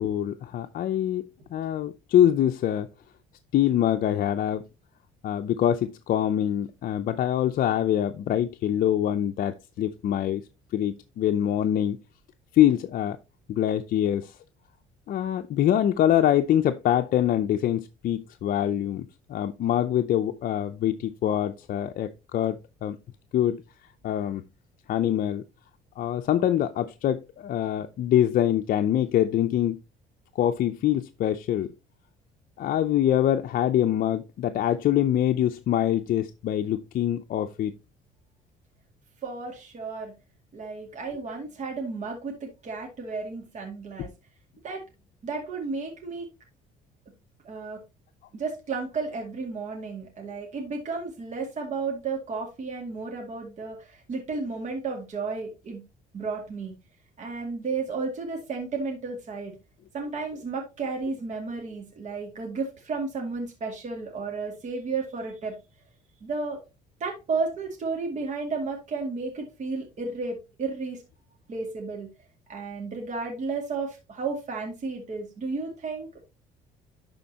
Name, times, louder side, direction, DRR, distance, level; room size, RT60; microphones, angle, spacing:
voice 1, 0.0-2.9 3.5-4.6 5.2-10.4 10.7-12.0 12.5-13.2 13.5-14.4 15.1-23.0 23.3-23.6 24.0-24.4 24.9-25.4 26.0-29.8 30.4-31.7 32.6-37.7, left 11 dB, 55° left, 0.6 m, -24 dB
voice 2, 39.2-40.1 40.5-44.1 44.6-44.8 45.2-46.3 47.4-47.8 48.3-55.8 56.1-56.7 57.2-59.5 59.9-65.5 66.2-66.6 67.0-71.0 71.5-72.1 72.5-76.1, right 4 dB, 45° right, 2.2 m, -33 dB
11.5 x 4.3 x 2.8 m
cardioid pair, 110°, 17 cm